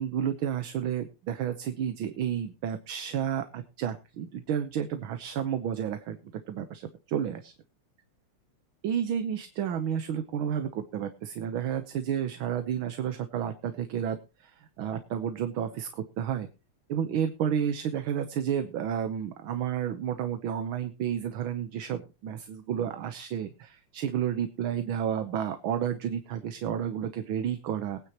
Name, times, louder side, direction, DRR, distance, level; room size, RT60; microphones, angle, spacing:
voice 1, 0.0-7.5 8.8-16.5 16.9-28.0, right 9 dB, 75° right, 9 dB, 1.8 m, -31 dB
21.5 x 9.6 x 3.0 m, 0.31 s
omnidirectional pair, 2.4 m